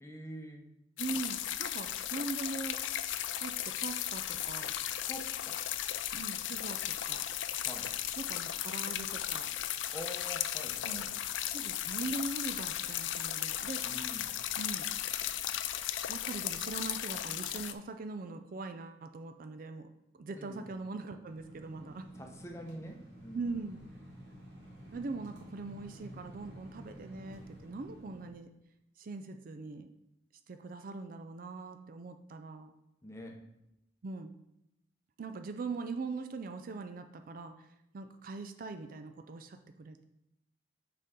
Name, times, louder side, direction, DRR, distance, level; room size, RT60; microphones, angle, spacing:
voice 1, 0.0-0.7 5.1-5.6 7.6-7.9 9.9-11.1 13.8-14.3 20.4-20.7 22.2-23.5 33.0-33.4, equal, 15° left, 2 dB, 0.8 m, -45 dB
sound 1, 1.0-17.7, left 11 dB, 75° left, 0.4 m, -36 dB
voice 2, 1.0-2.8 3.4-4.7 6.1-7.3 8.2-9.5 10.9-11.0 11.5-13.9 14.6-14.9 16.1-19.9 20.1-22.1 23.3-23.8 24.9-28.5 29.0-29.9 30.5-32.7 34.0-34.3 35.2-37.7 37.9-40.0, right 3 dB, 50° right, 8 dB, 0.4 m, -41 dB
sound 2, 21.2-28.3, equal, 75° right, 2.1 m, -51 dB
6.7 x 5.2 x 3.7 m, 0.83 s
head